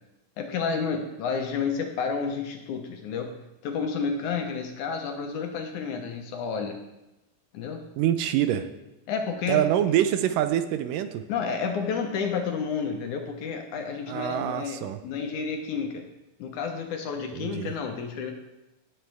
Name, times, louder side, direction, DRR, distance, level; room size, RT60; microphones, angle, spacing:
voice 1, 0.4-3.3 3.6-6.8 7.5-7.8 9.1-9.6 11.3-16.1 16.4-18.3, left 5 dB, 70° left, 4 dB, 2.2 m, -30 dB
voice 2, 8.0-8.7 9.5-11.3 14.1-15.0 17.3-17.7, right 11 dB, 80° right, 9 dB, 2.1 m, -25 dB
17.0 x 7.9 x 3.4 m, 0.95 s
omnidirectional pair, 4.0 m